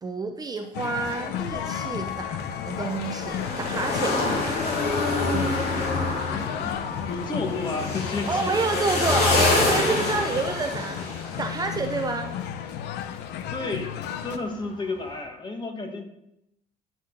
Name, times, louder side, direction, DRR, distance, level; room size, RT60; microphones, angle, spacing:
voice 1, 0.0-2.4 2.6-4.2 8.3-11.0 11.4-12.3, right 3 dB, 20° right, 5 dB, 0.6 m, -28 dB
sound 1, 0.7-14.4, left 9 dB, 85° left, 0.7 m, -33 dB
sound 2, 1.3-12.3 12.6-12.7 14.7-15.0, left 2 dB, 70° left, 3.0 m, -27 dB
voice 2, 6.3-6.7 7.0-8.5 13.5-13.9 14.2-16.0, left 3 dB, 25° left, 4 dB, 1.5 m, -31 dB
10.0 x 6.1 x 3.8 m, 0.82 s
cardioid pair, 110°, 17 cm